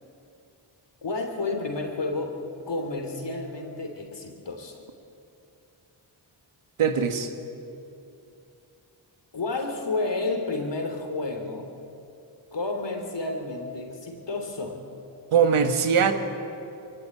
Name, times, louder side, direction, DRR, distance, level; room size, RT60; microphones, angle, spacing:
voice 1, 1.0-2.4 2.7-4.8 9.3-11.7 12.5-14.8, left 3 dB, 60° left, 4 dB, 3.2 m, -31 dB
voice 2, 6.8-7.3 15.3-16.1, right 6 dB, 85° right, 8 dB, 1.6 m, -21 dB
21.5 x 16.0 x 9.6 m, 2.7 s
cardioid pair, 45°, 48 cm